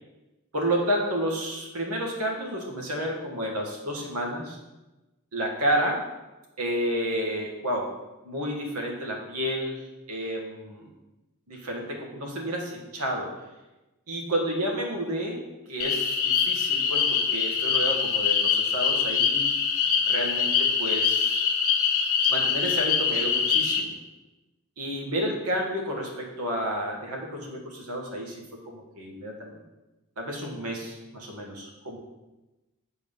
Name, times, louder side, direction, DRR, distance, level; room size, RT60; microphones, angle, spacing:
voice 1, 0.5-4.6 5.3-6.0 6.6-7.9 8.2-9.8 10.1-10.9 11.5-13.3 14.1-15.4 15.7-19.5 20.1-21.5 22.3-23.9 24.8-29.6 30.2-32.0, equal, 75° right, 0 dB, 1.7 m, -30 dB
sound 1, 15.8-23.8, left 6 dB, 65° left, 0.9 m, -24 dB
7.3 x 4.6 x 5.4 m, 1.0 s
head